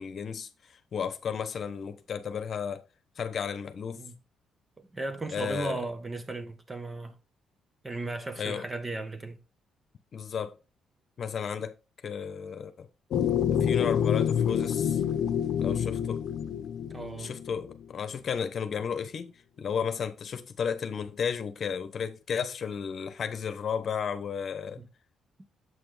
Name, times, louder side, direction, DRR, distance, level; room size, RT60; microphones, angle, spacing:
voice 1, 0.0-2.8 3.2-4.0 5.3-5.8 8.4-8.7 10.1-10.6 11.2-11.8 12.0-12.9 13.6-15.0 15.6-16.2 17.2-19.3 19.6-24.8, left 7 dB, 55° left, 1.0 m, -33 dB
voice 2, 4.8-7.1 7.8-9.4 16.9-17.3 24.8-24.9, right 2 dB, 25° right, 1.1 m, -36 dB
sound 1, 13.1-17.7, left 9 dB, 75° left, 0.7 m, -27 dB
7.8 x 5.9 x 3.4 m
cardioid pair, 90°, 0 cm